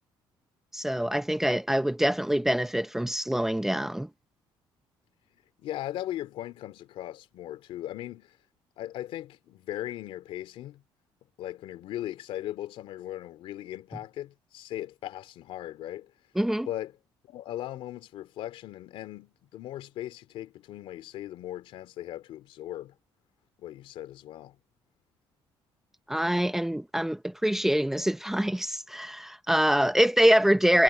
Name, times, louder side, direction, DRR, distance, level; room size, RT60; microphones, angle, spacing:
voice 1, 0.7-4.1 16.4-16.7 26.1-30.8, equal, 5° right, 0.8 m, -25 dB
voice 2, 5.6-8.4 8.8-10.8 11.4-16.1 16.7-17.0 17.3-22.9 23.6-24.6, left 13 dB, 80° left, 3.0 m, -38 dB
cardioid pair, 145°, 9 cm